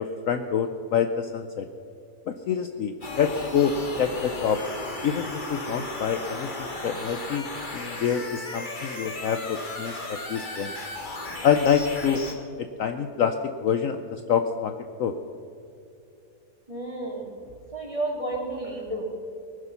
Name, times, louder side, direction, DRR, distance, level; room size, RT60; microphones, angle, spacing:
voice 1, 0.0-1.7 2.3-4.6 5.0-7.5 7.7-10.7 11.4-12.2 12.6-13.4 13.6-14.7 15.0-15.1, left 7 dB, 65° left, 8 dB, 1.0 m, -26 dB
sound 1, 3.0-12.3, left 1 dB, 30° left, 1.8 m, -35 dB
voice 2, 16.7-17.3 17.7-19.0, right 2 dB, 20° right, -2 dB, 3.1 m, -31 dB
19.5 x 11.5 x 5.7 m, 2.7 s
omnidirectional pair, 1.8 m